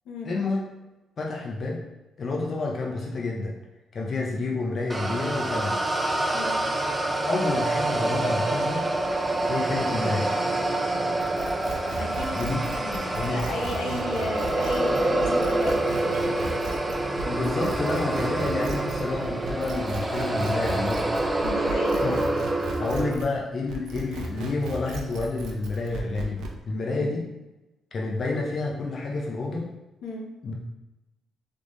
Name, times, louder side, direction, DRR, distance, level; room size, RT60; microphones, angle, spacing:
voice 1, 0.2-0.6 1.2-1.8 2.2-3.5 3.9-5.8 7.3-8.8 9.5-10.3 12.3-12.6 13.1-13.8 17.3-21.1 22.0-22.2 22.8-27.2 27.9-29.7 30.4-30.5, left 3 dB, 50° left, -1 dB, 0.6 m, -29 dB
sound 1, 4.9-23.2, right 2 dB, 20° right, 0.5 m, -27 dB
sound 2, 11.2-23.4 23.7-26.6, right 3 dB, 80° right, 0.7 m, -37 dB
voice 2, 12.0-12.3 12.6-16.4 21.4-22.2 26.8-27.2 30.0-30.3, left 2 dB, 85° left, -1 dB, 0.9 m, -34 dB
3.4 x 3.4 x 3.9 m, 1.0 s
cardioid pair, 90°, 0 cm